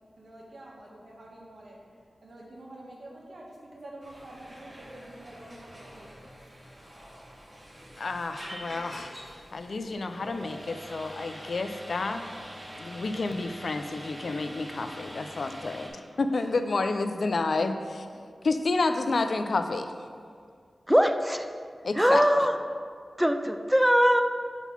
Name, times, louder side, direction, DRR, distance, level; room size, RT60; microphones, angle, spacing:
voice 1, 0.2-6.6 16.3-16.5, right 1 dB, 70° right, -2 dB, 1.1 m, -47 dB
sound 1, 4.0-15.9, equal, 25° right, 1.4 m, -45 dB
voice 2, 8.0-9.2 9.5-12.3 12.8-18.1 18.4-19.9 21.8-22.2, left 3 dB, 75° left, 8 dB, 0.3 m, -30 dB
voice 3, 20.9-21.5 21.9-22.6 23.2-24.2, equal, 5° right, 7 dB, 0.3 m, -21 dB
4.5 x 4.0 x 5.4 m, 2.1 s
cardioid pair, 45°, 0 cm